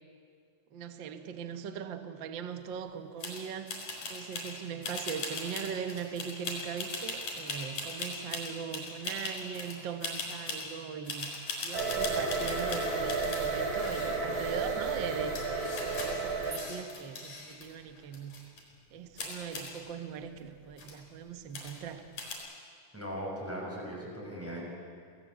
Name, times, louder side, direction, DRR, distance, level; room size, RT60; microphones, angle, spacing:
voice 1, 0.7-18.3 18.9-22.0, right 7 dB, 55° right, 8 dB, 1.3 m, -40 dB
sound 1, 3.2-3.4 3.7-4.5 4.8-9.8 10.0-10.7 11.1-13.5 13.7-14.4 15.0-15.1 15.3-17.6 18.0-18.6 19.2-19.7 20.4-20.5 20.7-21.0 21.5-21.9 22.2-22.3, left 3 dB, 65° left, 5.9 m, -39 dB
sound 2, 11.7-16.7, right 4 dB, 30° right, 3.0 m, -32 dB
voice 2, 22.9-24.6, equal, 5° right, -4 dB, 6.6 m, -38 dB
27.0 x 17.0 x 8.0 m, 2.1 s
omnidirectional pair, 3.6 m